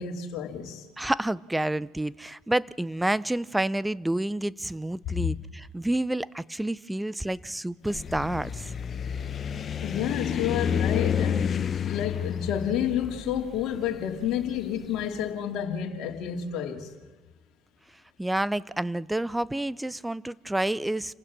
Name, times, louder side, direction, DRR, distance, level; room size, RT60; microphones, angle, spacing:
voice 1, 0.0-0.8 5.1-5.4 9.8-16.9, left 9 dB, 60° left, 2.8 m, -30 dB
voice 2, 1.0-8.7 18.2-21.1, right 1 dB, 10° right, 0.7 m, -29 dB
sound 1, 7.8-15.0, left 8 dB, 40° left, 1.1 m, -30 dB
29.0 x 16.0 x 6.2 m
hypercardioid pair, 65°, 0 cm